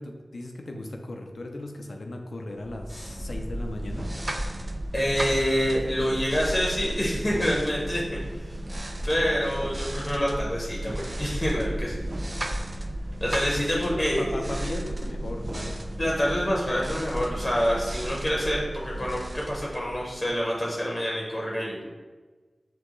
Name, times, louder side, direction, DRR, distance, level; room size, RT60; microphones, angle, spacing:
voice 1, 0.0-4.1 13.7-15.8, left 1 dB, 75° left, 3 dB, 0.5 m, -36 dB
sound 1, 2.6-20.4, right 1 dB, 35° right, 0.4 m, -34 dB
voice 2, 4.9-8.5 9.0-12.3 13.2-14.5 16.0-21.8, equal, 30° left, -3 dB, 0.8 m, -27 dB
6.0 x 2.2 x 3.0 m, 1.3 s
wide cardioid pair, 55°, 0 cm